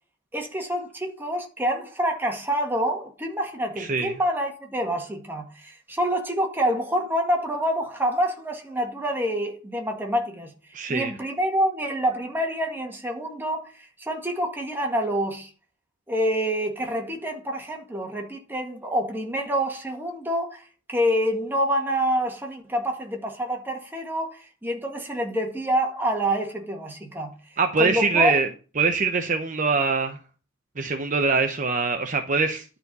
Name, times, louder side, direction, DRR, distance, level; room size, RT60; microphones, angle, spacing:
voice 1, 0.3-10.5 10.9-15.5 16.1-27.3 27.8-28.4, equal, 10° right, 1.8 m, -27 dB
voice 2, 3.8-4.1 10.7-11.1 27.6-28.5 28.8-30.2 30.8-32.6, right 4 dB, 40° right, 0.8 m, -23 dB
11.0 x 4.3 x 6.7 m
head